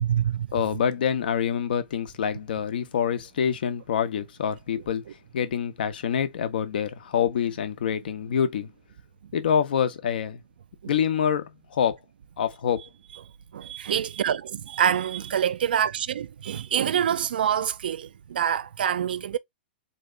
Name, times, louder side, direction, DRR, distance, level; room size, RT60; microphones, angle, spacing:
voice 1, 0.0-0.5 9.2-9.3 10.8-10.9 13.5-19.4, right 9 dB, 65° right, 0.4 m, -26 dB
voice 2, 0.5-5.0 5.3-8.7 9.3-10.4 10.9-12.0 12.4-12.9, left 8 dB, 65° left, 0.9 m, -26 dB
4.0 x 3.0 x 3.2 m
hypercardioid pair, 110°, 5 cm